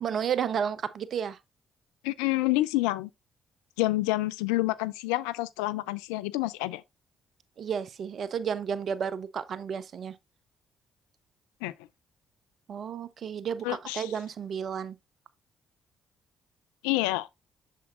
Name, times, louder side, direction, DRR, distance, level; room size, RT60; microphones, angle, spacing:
voice 1, 0.0-1.4 7.6-10.1 12.7-15.0, right 7 dB, 55° right, 0.7 m, -32 dB
voice 2, 2.0-3.1 3.8-6.8 11.6-11.7 13.6-14.1 16.8-17.3, left 18 dB, 75° left, 0.4 m, -28 dB
7.3 x 7.0 x 2.5 m
hypercardioid pair, 45°, 0 cm